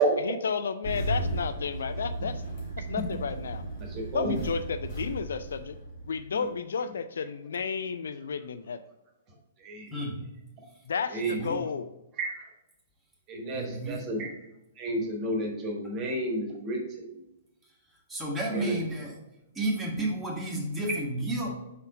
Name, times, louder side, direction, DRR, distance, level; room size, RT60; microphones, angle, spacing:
voice 1, 0.2-2.4 2.9-3.6 4.1-5.8 6.1-8.8 10.9-11.9, left 6 dB, 60° left, 10 dB, 0.3 m, -32 dB
Engine starting, 0.8-6.4, right 1 dB, 45° left, 1.7 m, -35 dB
voice 2, 3.9-4.3 9.6-9.9 11.1-11.6 12.2-12.4 13.3-14.3 14.8-17.2 18.5-18.7, right 2 dB, 25° right, 1 dB, 1.4 m, -30 dB
voice 3, 9.9-10.2 11.4-11.5 13.5-14.1 18.1-19.2 19.5-21.5, right 1 dB, 10° right, -4 dB, 1.6 m, -31 dB
5.1 x 4.1 x 4.8 m, 0.91 s
figure-of-eight pair, 115°, 0 cm